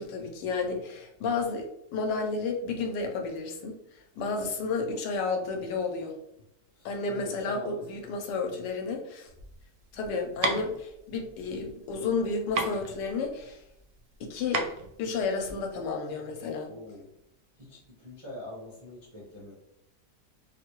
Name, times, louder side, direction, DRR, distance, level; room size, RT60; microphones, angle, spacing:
voice 1, 0.0-6.1 6.8-9.3 9.9-13.6 14.2-14.6 15.0-16.7, left 4 dB, 80° left, 3 dB, 1.2 m, -32 dB
voice 2, 6.7-8.1 16.6-17.1 17.6-19.5, left 1 dB, 45° right, -7 dB, 0.4 m, -43 dB
sound 1, 9.3-15.9, right 3 dB, 70° right, 0.9 m, -34 dB
3.3 x 2.4 x 2.9 m, 0.81 s
omnidirectional pair, 1.9 m